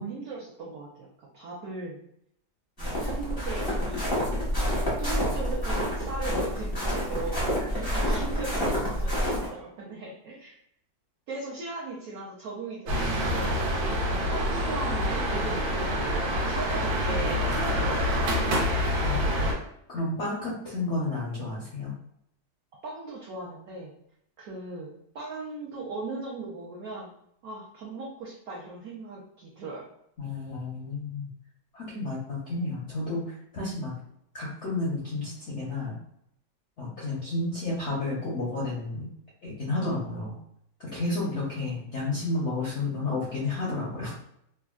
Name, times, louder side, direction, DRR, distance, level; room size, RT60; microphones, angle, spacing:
voice 1, 0.0-2.0 2.8-4.1 5.0-10.6 11.3-13.5 14.3-16.2 16.5-17.4 17.7-18.5 22.8-23.9 24.4-27.2 27.4-29.9, right 3 dB, 70° right, -4 dB, 0.8 m, -38 dB
sound 1, 2.8-9.5, equal, 30° left, 0.3 m, -28 dB
sound 2, 12.9-19.5, equal, 85° right, 1.4 m, -26 dB
voice 2, 19.0-19.5 19.9-21.9 30.2-31.3 31.7-33.9 34.3-36.0 36.8-39.1 39.4-40.3 40.8-44.1, left 2 dB, 70° left, -6 dB, 0.6 m, -31 dB
3.4 x 2.1 x 2.3 m, 0.72 s
omnidirectional pair, 2.0 m